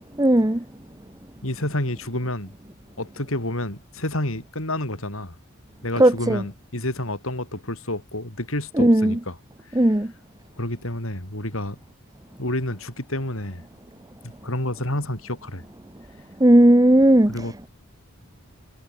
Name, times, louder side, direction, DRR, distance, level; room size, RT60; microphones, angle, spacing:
voice 1, 0.2-0.6 6.0-6.4 8.8-9.2 9.7-10.1 16.4-17.3, right 1 dB, 15° right, 0.9 m, -16 dB
voice 2, 1.4-2.5 3.0-5.4 5.8-9.4 9.7-9.9 10.6-11.8 12.4-13.6 14.2-15.6 17.3-17.7, left 1 dB, 70° left, 5.8 m, -29 dB
head